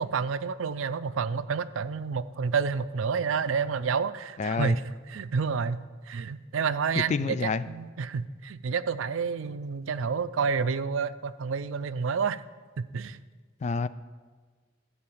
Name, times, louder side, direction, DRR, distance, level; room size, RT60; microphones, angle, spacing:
voice 1, 0.0-12.4 12.8-13.2, right 5 dB, 85° right, 14 dB, 0.5 m, -29 dB
voice 2, 4.4-4.8 7.1-7.6 13.6-13.9, left 4 dB, 35° left, 14 dB, 0.3 m, -28 dB
12.5 x 4.8 x 8.6 m, 1.4 s
head